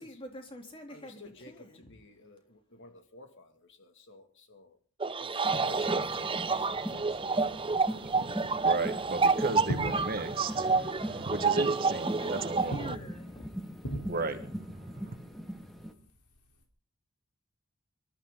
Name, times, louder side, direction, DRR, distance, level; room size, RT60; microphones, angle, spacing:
voice 1, 0.0-1.9 12.1-13.6, left 1 dB, 25° left, 3.5 m, -46 dB
voice 2, 0.9-7.8, left 2 dB, 55° left, 2.5 m, -53 dB
sound 1, 5.0-12.9, right 4 dB, 25° right, 0.7 m, -29 dB
sound 2, 5.4-15.9, equal, ahead, 1.8 m, -41 dB
sound 3, 7.4-16.6, right 1 dB, 90° left, 3.9 m, -43 dB
voice 3, 8.1-12.9 14.1-15.2, right 3 dB, 40° right, 1.7 m, -36 dB
25.5 x 13.5 x 4.0 m
head